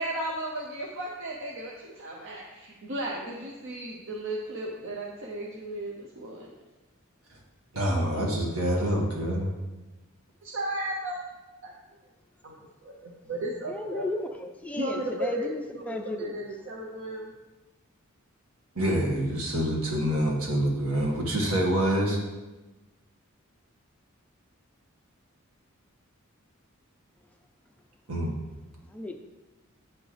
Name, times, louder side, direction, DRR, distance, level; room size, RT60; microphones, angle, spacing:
voice 1, 0.0-6.5 10.4-11.2 11.6-11.7 12.4-12.6 12.8-14.0 14.8-17.3, right 1 dB, 60° right, -1 dB, 0.8 m, -35 dB
voice 2, 7.7-9.5 18.7-22.2 28.1-28.4, right 1 dB, 80° right, -1 dB, 1.8 m, -26 dB
voice 3, 13.6-16.3 28.9-29.2, left 1 dB, 5° left, 4 dB, 0.4 m, -34 dB
8.5 x 6.3 x 3.3 m, 1.1 s
head